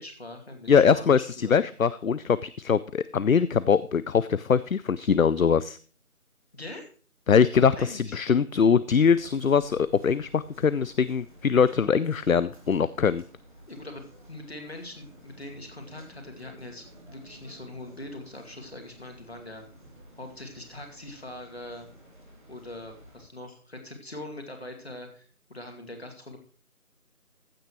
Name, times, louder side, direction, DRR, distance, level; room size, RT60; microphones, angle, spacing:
voice 1, 0.0-1.7 6.5-6.9 7.7-8.2 13.7-19.6 20.2-21.9 22.5-26.4, left 1 dB, 45° left, 4 dB, 2.5 m, -42 dB
voice 2, 0.7-5.8 7.3-13.2, left 6 dB, 65° left, 17 dB, 0.5 m, -22 dB
sound 1, 9.0-23.3, right 1 dB, 35° right, 3.0 m, -52 dB
15.0 x 8.7 x 3.1 m, 0.41 s
figure-of-eight pair, 170°, 44 cm